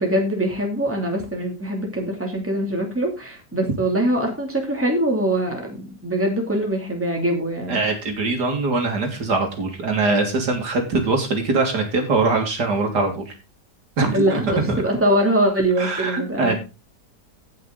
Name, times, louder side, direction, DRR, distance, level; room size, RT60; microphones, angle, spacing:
voice 1, 0.0-7.8 14.1-16.5, right 1 dB, 5° right, 1 dB, 2.8 m, -23 dB
voice 2, 7.7-13.3 14.0-14.7 15.8-16.5, right 3 dB, 70° right, 3 dB, 2.7 m, -22 dB
17.5 x 5.8 x 3.9 m, 0.29 s
omnidirectional pair, 1.9 m